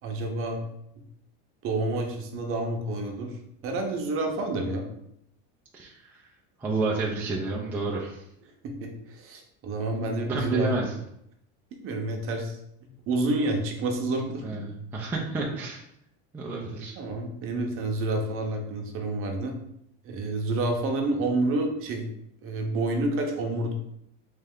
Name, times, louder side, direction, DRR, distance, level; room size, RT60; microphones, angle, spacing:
voice 1, 0.0-0.6 1.6-3.3 3.6-4.9 8.6-10.7 11.8-12.6 13.1-14.4 16.9-19.6 20.0-22.1 22.4-23.7, right 2 dB, 40° right, 2 dB, 0.8 m, -29 dB
voice 2, 5.7-6.2 6.6-8.2 10.3-10.9 14.4-15.8 16.3-16.9, right 3 dB, 5° right, -4 dB, 0.4 m, -30 dB
3.3 x 3.2 x 3.7 m, 0.77 s
cardioid pair, 145°, 33 cm